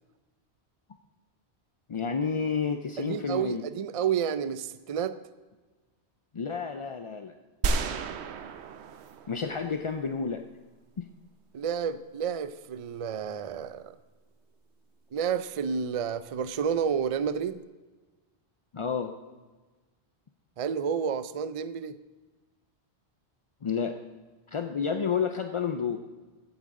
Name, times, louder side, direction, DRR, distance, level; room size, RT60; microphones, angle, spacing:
voice 1, 1.9-3.6 6.3-7.3 9.3-10.4 11.0-11.1 18.7-19.2 23.6-24.0 24.5-26.0, left 6 dB, 45° left, 6 dB, 0.4 m, -30 dB
voice 2, 3.0-5.1 11.5-14.0 15.1-17.6 20.6-22.0, right 7 dB, 50° right, 13 dB, 0.4 m, -30 dB
sound 1, 7.6-10.0, right 4 dB, 75° right, 1.0 m, -32 dB
16.0 x 8.7 x 3.7 m, 1.3 s
omnidirectional pair, 1.1 m